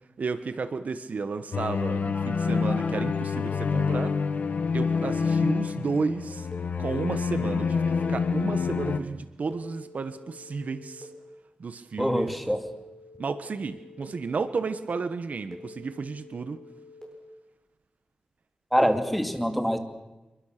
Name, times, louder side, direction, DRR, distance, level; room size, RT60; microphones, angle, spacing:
voice 1, 0.2-4.2 4.7-6.5 6.8-11.1 11.6-12.3 13.2-16.6 18.8-18.9, right 4 dB, 60° right, 11 dB, 1.3 m, -32 dB
sound 1, 1.5-9.0, left 5 dB, 65° left, 1.4 m, -27 dB
Telephone, 2.0-3.0 3.5-5.0 6.5-8.0 9.5-11.0 12.5-14.0 15.5-17.0, left 2 dB, 25° left, 7.6 m, -47 dB
voice 2, 12.0-12.6 18.7-19.8, equal, ahead, 6 dB, 2.5 m, -25 dB
28.0 x 23.0 x 6.8 m, 1.1 s
wide cardioid pair, 105°, 3 cm